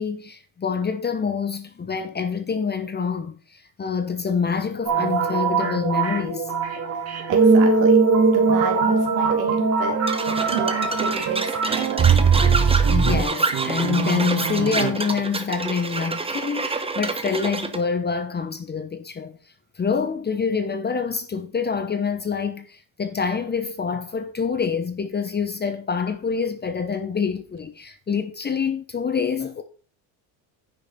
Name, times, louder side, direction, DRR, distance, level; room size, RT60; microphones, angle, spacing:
voice 1, 0.0-6.5 12.9-19.4 19.8-29.6, left 5 dB, 20° left, 1.0 m, -26 dB
sound 1, 4.9-13.2, right 4 dB, 35° right, 2.6 m, -20 dB
voice 2, 6.9-8.0 8.3-10.0 10.4-12.1, right 6 dB, 80° right, 3.3 m, -32 dB
sound 2, 8.1-15.2, right 9 dB, 60° right, 2.0 m, -31 dB
sound 3, 10.1-17.8, right 4 dB, 10° right, 1.1 m, -28 dB
9.9 x 7.1 x 4.3 m
cardioid pair, 125°, 45 cm